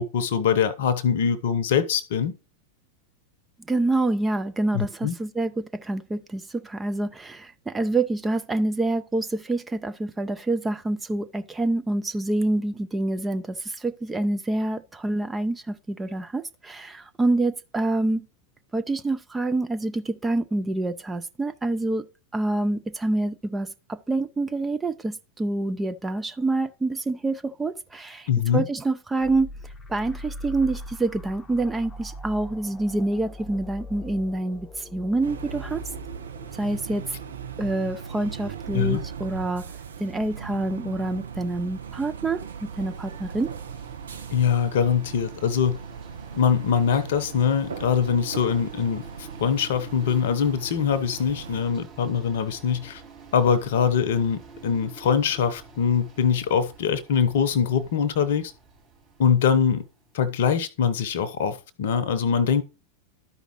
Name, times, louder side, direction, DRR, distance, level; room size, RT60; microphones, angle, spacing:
voice 1, 0.0-2.3 4.7-5.1 28.3-28.6 38.7-39.0 44.3-45.8 46.3-53.0 53.3-58.5 59.2-59.9 60.1-62.6, left 7 dB, 55° left, 0.8 m, -23 dB
voice 2, 3.7-18.3 18.7-22.1 22.3-29.5 29.9-35.8 36.6-37.1 37.6-39.7 40.0-43.5, right 2 dB, 10° right, 0.5 m, -27 dB
sound 1, 29.2-40.5, left 1 dB, 15° left, 0.9 m, -42 dB
sound 2, 35.2-51.6, right 7 dB, 65° right, 0.6 m, -39 dB
sound 3, 41.3-60.3, right 5 dB, 45° right, 3.8 m, -48 dB
12.5 x 5.1 x 3.0 m
figure-of-eight pair, 90°, 0 cm